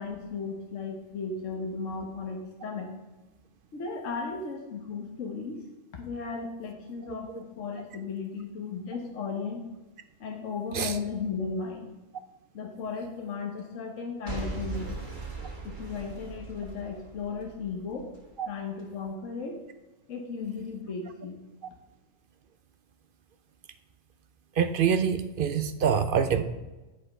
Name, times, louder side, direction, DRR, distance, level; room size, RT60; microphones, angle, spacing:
voice 1, 0.0-2.9 3.7-5.7 5.9-9.7 10.2-11.9 12.5-15.0 15.6-18.1 18.5-19.6 20.1-21.4, left 5 dB, 70° left, 1 dB, 1.5 m, -35 dB
Boom / Shatter / Crushing, 14.3-18.3 18.8-18.9, right 3 dB, 35° right, 1.7 m, -39 dB
voice 2, 24.6-26.4, right 7 dB, 55° right, 10 dB, 0.6 m, -25 dB
10.0 x 5.0 x 5.4 m, 1.1 s
omnidirectional pair, 1.4 m